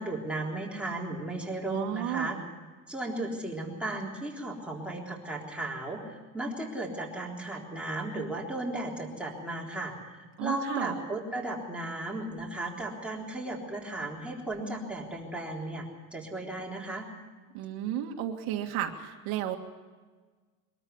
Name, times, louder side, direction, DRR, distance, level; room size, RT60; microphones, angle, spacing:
voice 1, 0.0-2.4 2.9-15.9 16.1-17.1, right 2 dB, 5° right, -3 dB, 3.7 m, -35 dB
voice 2, 1.7-2.4 10.4-11.0 17.5-19.6, right 11 dB, 70° right, 3 dB, 2.0 m, -33 dB
23.5 x 13.5 x 9.5 m, 1.4 s
cardioid pair, 145°, 40 cm